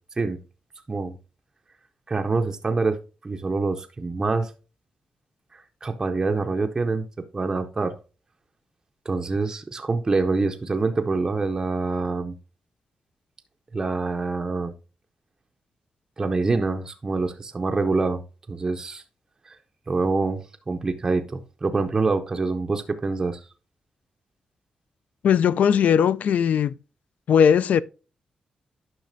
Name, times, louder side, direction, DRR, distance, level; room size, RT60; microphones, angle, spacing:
voice 1, 2.1-4.5 5.5-7.1 7.3-7.9 9.1-12.3 13.7-14.7 16.2-18.2 18.5-19.0 19.5-19.6 19.9-23.5, right 3 dB, 25° right, 0.5 m, -25 dB
voice 2, 25.2-26.8 27.3-27.8, left 8 dB, 70° left, 0.3 m, -19 dB
10.5 x 5.7 x 2.6 m
wide cardioid pair, 155°, 3 cm